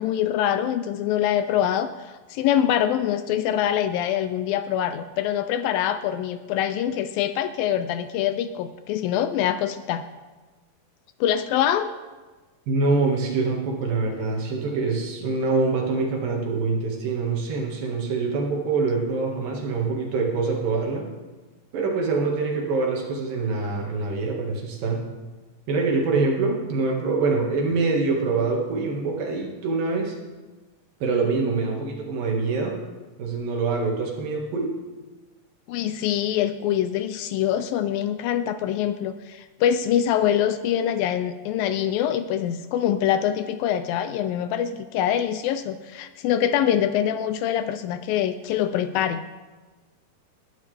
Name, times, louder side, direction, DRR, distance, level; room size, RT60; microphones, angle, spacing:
voice 1, 0.0-10.0 11.2-11.9 35.7-49.2, left 10 dB, 80° left, 10 dB, 2.2 m, -24 dB
voice 2, 12.7-21.1 21.7-25.0 25.7-30.1 31.0-32.8 33.2-34.7, right 4 dB, 70° right, 0 dB, 3.4 m, -25 dB
20.5 x 11.5 x 3.4 m, 1.3 s
omnidirectional pair, 4.3 m